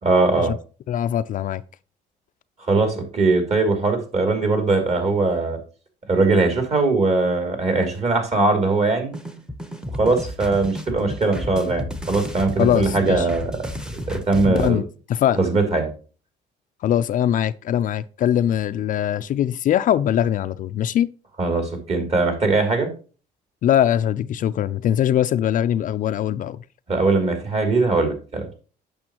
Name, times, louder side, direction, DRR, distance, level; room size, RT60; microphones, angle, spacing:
voice 1, 0.0-0.5 2.7-5.6 6.1-9.1 9.9-13.5 14.1-14.8 15.4-15.9 21.4-22.9 26.9-28.4, right 3 dB, 40° right, 2.7 m, -20 dB
voice 2, 0.9-1.6 12.6-13.3 14.5-15.4 16.8-21.1 23.6-26.6, left 10 dB, 50° left, 0.4 m, -21 dB
sound 1, 9.1-14.7, left 1 dB, 5° right, 0.9 m, -32 dB
8.7 x 6.7 x 2.9 m
cardioid pair, 110°, 17 cm